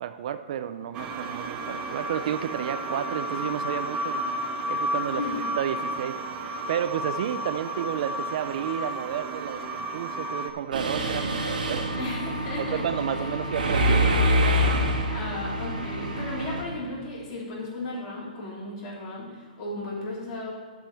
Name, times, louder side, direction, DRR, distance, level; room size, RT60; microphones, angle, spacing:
voice 1, 0.0-4.2 4.7-5.2 5.6-11.3 11.7-12.1 12.6-14.1, right 10 dB, 50° right, 11 dB, 0.4 m, -31 dB
sound 1, 0.9-10.5, equal, 20° right, 0.8 m, -32 dB
voice 2, 5.1-5.4 12.0-12.8 13.1-13.3 15.0-20.5, left 2 dB, 40° left, -5 dB, 3.2 m, -35 dB
Mechanisms, 10.7-16.6, equal, 85° right, 1.7 m, -25 dB
7.6 x 5.4 x 7.5 m, 1.5 s
hypercardioid pair, 150°, 5 cm